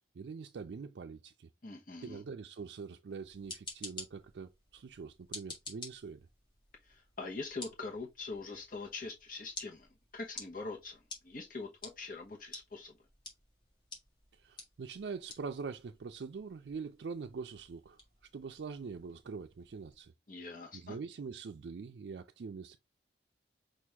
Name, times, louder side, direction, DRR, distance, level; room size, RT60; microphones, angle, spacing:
voice 1, 0.2-1.5 2.0-6.3 14.3-18.0 18.3-20.1 20.7-22.8, right 5 dB, 75° right, 0.4 m, -44 dB
voice 2, 1.6-2.2 6.8-9.9 10.1-11.0 11.2-12.9 20.3-21.0, left 3 dB, 50° left, 1.0 m, -43 dB
sound 1, 3.2-20.0, left 2 dB, 30° left, 1.6 m, -52 dB
6.1 x 2.5 x 3.4 m
head